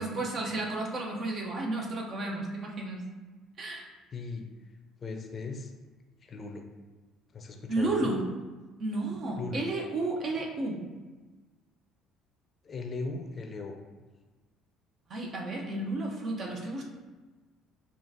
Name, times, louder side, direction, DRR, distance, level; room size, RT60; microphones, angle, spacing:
voice 1, 0.0-3.1 3.6-3.9 7.7-8.2 8.8-10.8 15.1-16.8, right 2 dB, 50° right, -1 dB, 0.9 m, -32 dB
voice 2, 4.1-4.5 5.0-5.7 6.2-6.6 7.3-8.1 9.4-9.6 12.6-13.8, left 3 dB, 40° left, 3 dB, 0.6 m, -38 dB
5.1 x 2.5 x 2.8 m, 1.3 s
hypercardioid pair, 60°, 0 cm